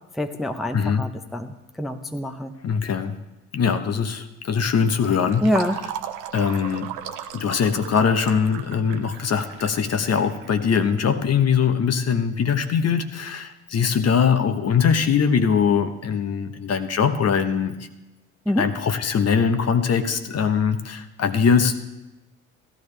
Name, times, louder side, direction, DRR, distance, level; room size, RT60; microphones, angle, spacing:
voice 1, 0.1-2.5 5.4-5.8 18.5-18.7, equal, ahead, 6 dB, 0.7 m, -26 dB
voice 2, 0.7-1.1 2.6-3.2 3.5-5.4 6.3-6.9 7.3-17.7 18.6-21.7, left 6 dB, 35° left, 9 dB, 0.9 m, -21 dB
Fill (with liquid), 4.9-11.2, right 10 dB, 65° right, 0.9 m, -37 dB
15.5 x 12.0 x 3.3 m, 1.0 s
hypercardioid pair, 55°, 42 cm